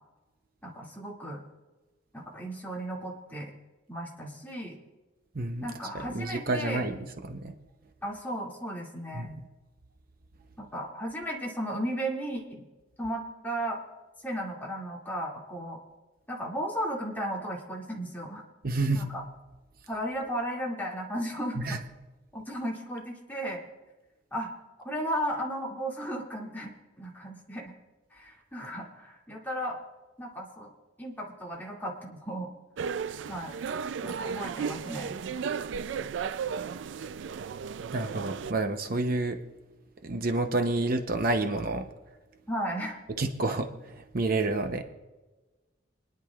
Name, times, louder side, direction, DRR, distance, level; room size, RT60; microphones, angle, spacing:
voice 1, 0.6-1.4 2.1-3.5 3.9-4.8 5.6-6.8 8.0-9.3 10.6-12.6 13.0-13.8 14.2-15.8 16.3-18.4 18.9-19.2 19.9-21.8 22.3-23.6 24.3-24.5 24.8-26.7 27.0-27.7 28.1-29.8 30.2-30.7 31.0-32.5 33.3-33.5 34.0-35.2 42.5-43.0, equal, 10° left, -4 dB, 2.3 m, -35 dB
voice 2, 5.3-5.7 6.1-7.0 7.2-7.5 9.1-9.4 18.6-19.0 21.6-21.8 37.9-39.4 40.0-41.9 43.2-44.8, right 2 dB, 50° right, 6 dB, 0.7 m, -29 dB
sound 1, 32.8-38.5, right 6 dB, 75° right, 0.4 m, -34 dB
28.0 x 10.5 x 2.4 m, 1.2 s
head